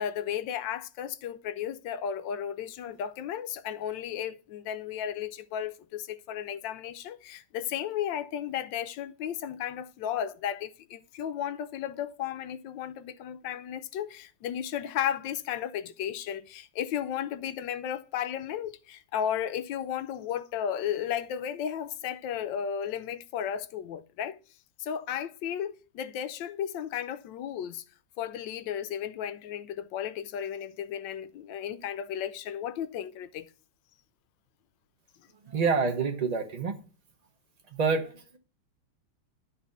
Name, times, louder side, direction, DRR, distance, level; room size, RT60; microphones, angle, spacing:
voice 1, 0.0-24.4 24.8-27.8 28.2-33.5, left 9 dB, 75° left, 1.2 m, -34 dB
voice 2, 35.4-36.8 37.7-38.4, right 5 dB, 40° right, 0.5 m, -27 dB
9.5 x 4.1 x 5.4 m
omnidirectional pair, 2.2 m